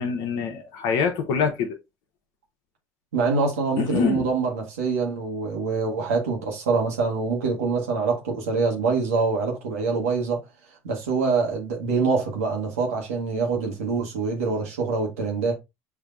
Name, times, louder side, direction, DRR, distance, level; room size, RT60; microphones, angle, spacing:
voice 1, 0.0-1.8 3.8-4.3, left 6 dB, 70° left, 0.8 m, -25 dB
voice 2, 3.1-10.4 10.8-15.5, right 4 dB, 85° right, 1.2 m, -25 dB
5.7 x 2.7 x 2.5 m
hypercardioid pair, 70°, 8 cm